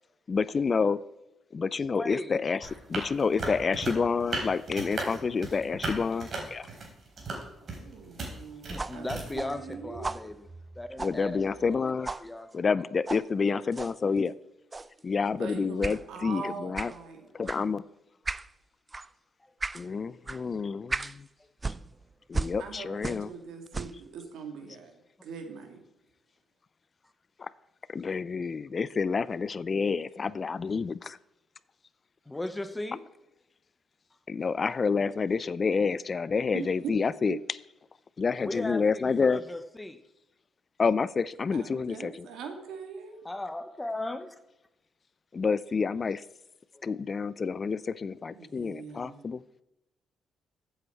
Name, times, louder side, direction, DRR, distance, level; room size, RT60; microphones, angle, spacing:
voice 1, 0.3-1.0 1.5-6.7 11.0-12.2 12.5-14.3 15.0-16.9 17.3-17.8 19.7-21.3 22.3-23.3 27.4-27.5 27.9-31.2 34.3-37.4 38.2-39.4 40.8-42.3 45.3-46.2 46.8-49.4, left 5 dB, 40° left, 18 dB, 0.4 m, -28 dB
voice 2, 1.9-2.4 8.7-10.5 10.8-11.4 11.7-11.8 12.2-12.5 12.8-12.9 32.3-33.0 38.4-40.0 43.2-44.3, left 2 dB, 15° left, 11 dB, 1.0 m, -36 dB
sound 1, 2.6-9.4, right 3 dB, 50° right, 3.9 m, -36 dB
voice 3, 7.6-10.1 15.4-17.3 22.6-25.0 25.2-25.8 36.5-36.9 37.3-37.4 41.5-43.2 48.3-49.2, right 5 dB, 80° right, 4 dB, 2.5 m, -41 dB
sound 2, 8.8-11.8 12.1-12.3 13.1-13.3 13.7-14.0 14.7-15.0 15.8-16.0 16.8-17.0 17.5-17.6 18.3-18.5 18.9-19.1 19.6-19.9 20.3-20.4 20.9-21.2 21.6-23.4 23.7-24.1, right 3 dB, 25° right, 0.4 m, -36 dB
14.5 x 7.9 x 4.6 m, 0.92 s
cardioid pair, 90°, 0 cm